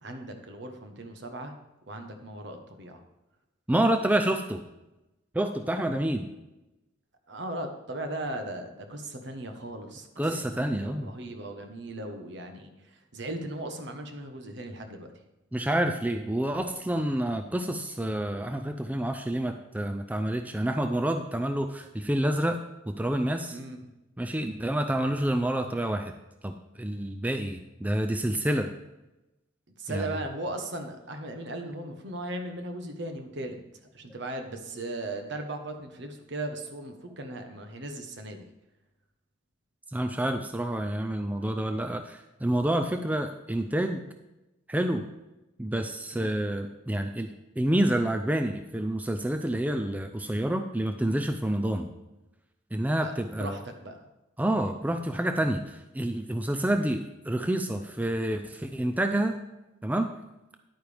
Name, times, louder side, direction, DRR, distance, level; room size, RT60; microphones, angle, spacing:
voice 1, 0.0-1.5 1.9-3.0 7.3-15.1 23.5-23.9 29.8-33.6 33.9-38.5 46.1-46.3 53.0-54.0, right 1 dB, 60° right, 5 dB, 1.3 m, -38 dB
voice 2, 3.7-4.6 5.3-6.3 10.2-11.1 15.5-22.6 22.9-23.6 24.2-26.1 26.4-28.7 29.9-30.2 39.9-44.0 44.7-45.1 45.6-47.3 47.6-51.9 52.7-53.6 54.4-59.4 59.8-60.1, right 1 dB, 10° right, 6 dB, 0.4 m, -28 dB
10.5 x 9.1 x 3.5 m, 0.98 s
head